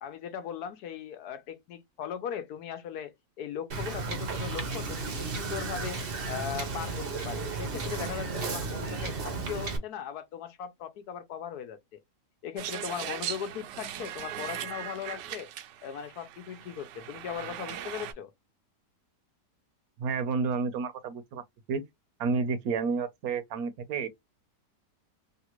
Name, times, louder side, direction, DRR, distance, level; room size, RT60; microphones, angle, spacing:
voice 1, 0.0-12.0 12.4-15.5 15.8-18.3, left 8 dB, 70° left, 1.2 m, -39 dB
Wind / Boat Water vehicle, 3.7-9.8, right 4 dB, 50° right, 0.7 m, -34 dB
sound 1, 12.6-18.1, right 10 dB, 85° right, 1.2 m, -39 dB
voice 2, 20.0-21.4 21.7-21.8 22.2-24.1, right 5 dB, 70° right, 1.1 m, -30 dB
3.3 x 2.5 x 2.9 m
omnidirectional pair, 1.8 m